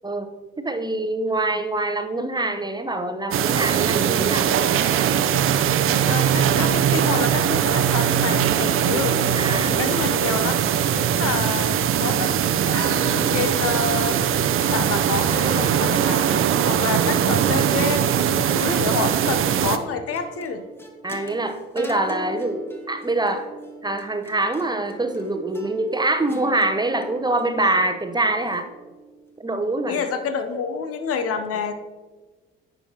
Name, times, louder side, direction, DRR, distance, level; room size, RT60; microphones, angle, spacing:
voice 1, 0.6-4.5 9.4-9.8 21.0-23.5 23.8-28.7 29.4-30.0, right 2 dB, 15° right, 7 dB, 0.8 m, -24 dB
sound 1, 3.3-19.8, right 9 dB, 45° right, 0.6 m, -21 dB
voice 2, 6.1-9.1 9.6-10.6 10.9-14.2 14.6-16.3 16.7-20.6 29.9-31.7, left 5 dB, 50° left, 8 dB, 0.7 m, -28 dB
sound 2, 12.8-29.3, right 1 dB, 10° left, 1.3 m, -39 dB
10.0 x 6.7 x 2.8 m, 1.3 s
figure-of-eight pair, 45°, 29 cm